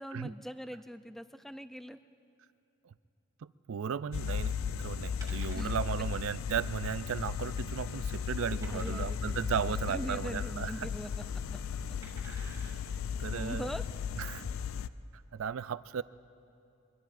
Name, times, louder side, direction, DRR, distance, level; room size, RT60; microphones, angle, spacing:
voice 1, 0.0-2.0 5.5-5.7 8.7-11.2 13.3-13.8, equal, ahead, 10 dB, 0.4 m, -42 dB
voice 2, 3.4-10.9 12.3-12.8 13.2-13.7 14.2-14.4 15.3-16.0, right 7 dB, 75° right, 16 dB, 0.4 m, -36 dB
sound 1, 4.1-14.9, left 7 dB, 75° left, 0.4 m, -36 dB
sound 2, 5.2-5.9 6.3-6.4 6.7-6.8 7.4-7.8 8.6-9.3 10.6-11.0 12.0-12.8 13.4-13.5, right 2 dB, 15° right, 2.5 m, -53 dB
24.0 x 23.5 x 2.5 m, 2.7 s
head